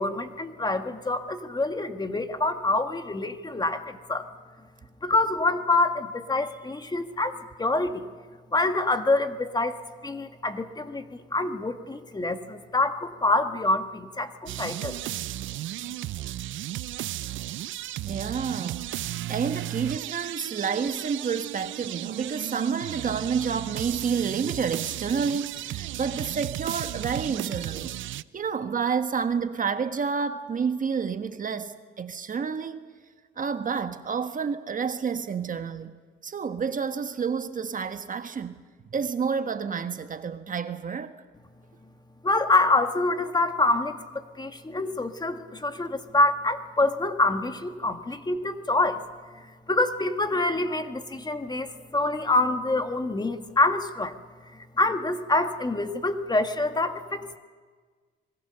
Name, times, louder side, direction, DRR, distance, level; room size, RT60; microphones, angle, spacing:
voice 1, 0.0-4.2 5.0-8.0 8.5-9.8 10.0-11.1 11.3-15.0 42.2-49.0 49.7-54.1 54.5-57.4, left 2 dB, 20° left, 1.6 m, -26 dB
sound 1, 14.5-28.2, right 14 dB, 75° right, 0.6 m, -34 dB
voice 2, 18.0-19.0 19.3-32.8 33.4-36.0 36.2-38.6 38.9-41.2, right 6 dB, 40° right, 1.3 m, -29 dB
26.0 x 21.0 x 6.8 m
cardioid pair, 90°, 20 cm